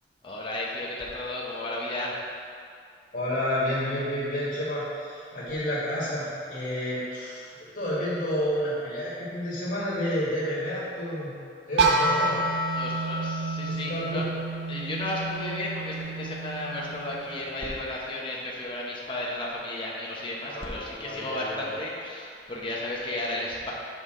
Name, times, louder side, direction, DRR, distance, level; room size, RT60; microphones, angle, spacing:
voice 1, 0.2-2.2 12.7-14.2 14.7-23.7, left 1 dB, 30° left, -4 dB, 0.8 m, -33 dB
voice 2, 3.1-11.4 11.7-12.4 13.6-14.2 20.4-21.7, equal, 50° left, -8 dB, 1.6 m, -30 dB
sound 1, 11.8-17.6, right 2 dB, 70° right, 0.5 m, -29 dB
6.4 x 5.3 x 3.7 m, 2.4 s
head